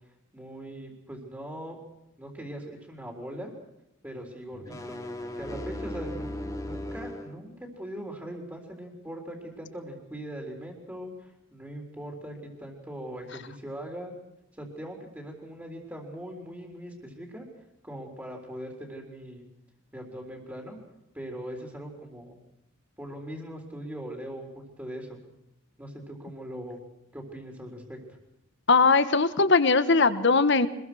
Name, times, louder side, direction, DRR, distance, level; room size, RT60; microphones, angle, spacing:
voice 1, 0.3-1.8 2.2-3.5 4.0-5.0 5.4-6.3 6.6-14.1 14.5-17.5 17.8-19.4 19.9-20.8 21.1-22.4 23.0-25.2 25.8-26.8 27.1-28.2, right 1 dB, 10° right, 1 dB, 3.9 m, -40 dB
sound 1, 4.5-7.3, left 1 dB, 15° left, 2.7 m, -36 dB
voice 2, 28.7-30.7, left 4 dB, 60° left, 12 dB, 1.4 m, -20 dB
25.5 x 21.5 x 6.3 m, 0.89 s
head